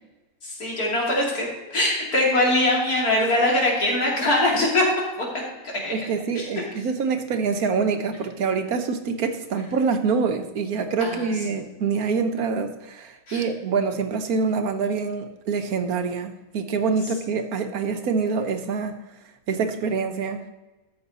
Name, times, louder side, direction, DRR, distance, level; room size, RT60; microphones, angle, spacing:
voice 1, 0.4-4.8 5.2-5.3 5.8-5.9 6.3-6.6 11.0-11.3 13.3-13.4, left 1 dB, 85° left, -3 dB, 3.3 m, -22 dB
voice 2, 5.9-18.9 19.5-20.4, right 5 dB, 80° right, 7 dB, 1.4 m, -25 dB
13.0 x 7.1 x 4.1 m, 1.1 s
omnidirectional pair, 1.5 m